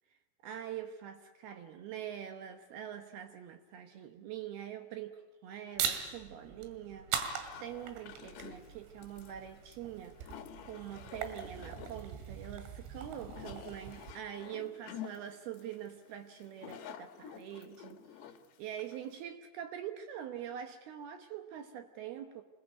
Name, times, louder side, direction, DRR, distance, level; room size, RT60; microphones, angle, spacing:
voice 1, 0.4-7.3 7.6-18.3 18.6-22.4, right 10 dB, 70° right, 7 dB, 2.6 m, -44 dB
sound 1, 5.8-14.1, right 8 dB, 85° right, 4.4 m, -41 dB
sound 2, 7.1-19.2, left 9 dB, 70° left, 3.5 m, -50 dB
26.5 x 20.5 x 9.3 m, 1.3 s
omnidirectional pair, 5.4 m